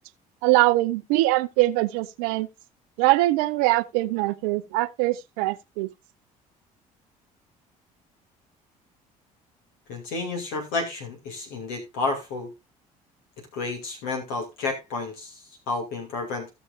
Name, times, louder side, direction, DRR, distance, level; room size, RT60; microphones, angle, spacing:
voice 1, 0.4-2.5 3.0-5.9, right 19 dB, 75° right, 0.7 m, -22 dB
voice 2, 9.9-12.5 13.5-16.5, left 3 dB, 75° left, 2.5 m, -31 dB
16.0 x 6.3 x 2.5 m
hypercardioid pair, 60°, 18 cm